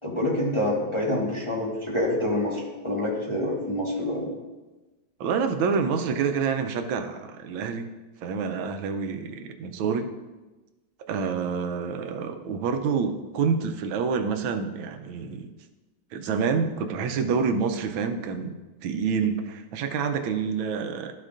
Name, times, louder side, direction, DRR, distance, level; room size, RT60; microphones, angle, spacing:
voice 1, 0.0-4.3, left 1 dB, 20° left, -5 dB, 1.2 m, -27 dB
voice 2, 5.2-7.9 8.2-10.1 11.1-15.5 16.1-21.1, right 5 dB, 90° right, 7 dB, 1.5 m, -27 dB
12.5 x 6.3 x 2.5 m, 1.2 s
omnidirectional pair, 2.1 m